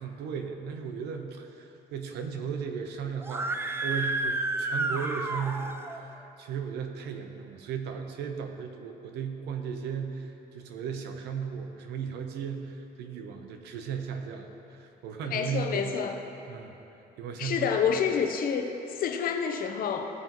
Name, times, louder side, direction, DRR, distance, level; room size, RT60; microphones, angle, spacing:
voice 1, 0.0-16.0 16.5-16.8 17.2-17.8, right 6 dB, 80° right, 5 dB, 0.8 m, -36 dB
Screaming, 3.2-6.0, right 2 dB, 15° right, 0.4 m, -31 dB
voice 2, 15.3-16.1 17.4-20.1, left 7 dB, 60° left, 5 dB, 0.8 m, -28 dB
15.5 x 5.3 x 3.0 m, 3.0 s
cardioid pair, 110°, 17 cm